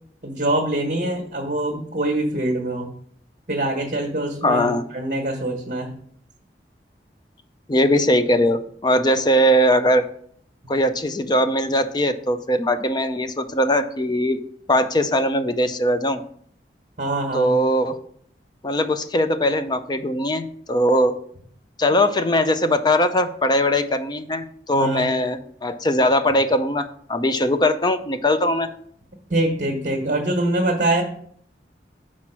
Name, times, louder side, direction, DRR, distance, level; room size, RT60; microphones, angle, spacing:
voice 1, 0.2-2.9 3.5-5.9 8.3-8.4 17.0-17.5 24.7-25.1 29.3-31.0, right 1 dB, 45° right, 0 dB, 1.4 m, -24 dB
voice 2, 4.4-4.8 7.7-10.0 10.7-14.4 14.7-16.2 17.3-18.1 18.6-21.2 21.8-28.7, equal, 25° left, 10 dB, 0.5 m, -20 dB
6.0 x 4.3 x 6.0 m, 0.62 s
head